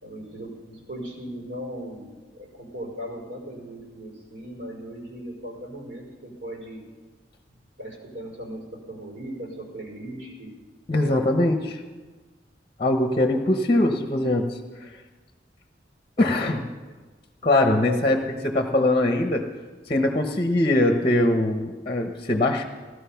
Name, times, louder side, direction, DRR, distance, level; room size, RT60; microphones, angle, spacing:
voice 1, 0.0-6.9 7.8-10.6 10.9-11.5 16.2-16.6 17.8-18.2, equal, 85° right, -2 dB, 5.5 m, -38 dB
voice 2, 10.9-11.8 12.8-14.6 16.2-16.6 17.4-19.4 19.9-22.6, left 1 dB, 30° left, 5 dB, 1.0 m, -22 dB
16.0 x 13.0 x 5.7 m, 1.3 s
head